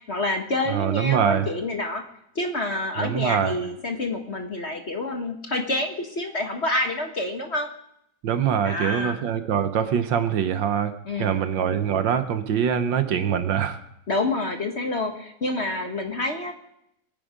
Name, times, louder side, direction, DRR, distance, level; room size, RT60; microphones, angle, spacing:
voice 1, 0.1-2.0 2.3-7.7 8.6-9.2 11.0-11.5 13.2-13.4 14.1-16.5, left 2 dB, 35° left, 4 dB, 1.3 m, -28 dB
voice 2, 0.7-1.5 3.0-3.6 8.2-10.9 11.2-13.8, right 8 dB, 70° right, 10 dB, 1.6 m, -23 dB
22.5 x 10.0 x 5.1 m, 0.78 s
omnidirectional pair, 2.2 m